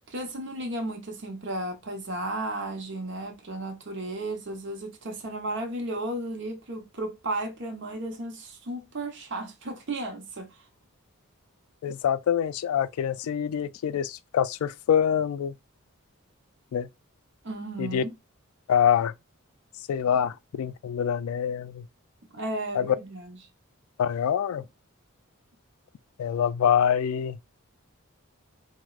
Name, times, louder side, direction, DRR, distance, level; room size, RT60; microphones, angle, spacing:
voice 1, 0.1-10.5 17.4-18.1 22.3-23.4, right 1 dB, 55° right, 0.9 m, -34 dB
voice 2, 11.8-15.5 16.7-16.9 17.8-18.0 18.7-19.1 19.9-21.9 22.7-23.0 24.0-24.6 26.2-27.4, left 8 dB, 80° left, 0.3 m, -25 dB
4.6 x 2.1 x 2.3 m
head